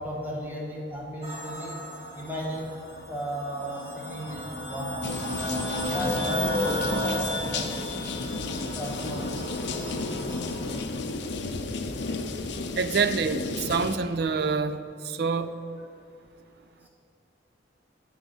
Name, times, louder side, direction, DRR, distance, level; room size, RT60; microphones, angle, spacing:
voice 1, 0.0-1.8 2.1-2.7 3.1-5.0 5.7-7.7 8.7-9.3 11.6-11.7 16.8-16.9, equal, 10° right, -3 dB, 1.2 m, -35 dB
sound 1, 1.2-10.9, left 1 dB, 30° right, 1.6 m, -33 dB
sound 2, 5.0-14.0, left 3 dB, 65° left, 0.6 m, -33 dB
voice 2, 12.8-15.6, right 5 dB, 55° right, 12 dB, 0.4 m, -27 dB
12.5 x 4.7 x 5.6 m, 2.4 s
head